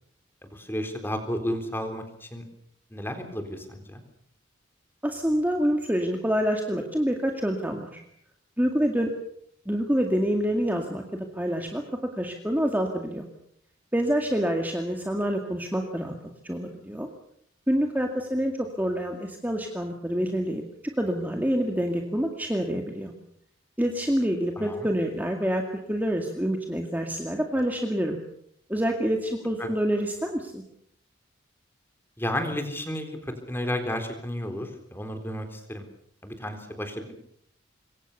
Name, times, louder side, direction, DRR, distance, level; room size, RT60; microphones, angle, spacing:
voice 1, 0.5-2.4 2.9-4.0 24.6-24.9 29.6-29.7 32.2-35.8 36.2-37.1, left 1 dB, 10° left, 6 dB, 4.0 m, -32 dB
voice 2, 5.0-8.0 8.6-9.1 9.7-11.8 12.2-13.3 13.9-16.1 16.4-17.1 17.7-18.5 18.8-20.6 21.0-23.1 23.8-25.6 25.9-28.2 28.7-30.6, equal, 10° right, 3 dB, 2.2 m, -27 dB
26.5 x 23.0 x 6.9 m, 0.69 s
head